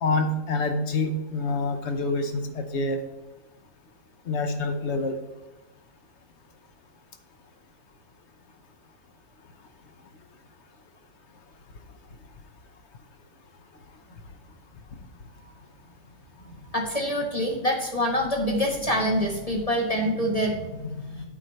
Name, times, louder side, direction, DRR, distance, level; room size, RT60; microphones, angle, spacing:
voice 1, 0.0-3.0 4.3-5.2, left 2 dB, 50° left, 7 dB, 0.9 m, -26 dB
voice 2, 16.4-21.3, equal, 25° left, 1 dB, 1.1 m, -26 dB
8.8 x 4.4 x 6.3 m, 1.1 s
omnidirectional pair, 1.9 m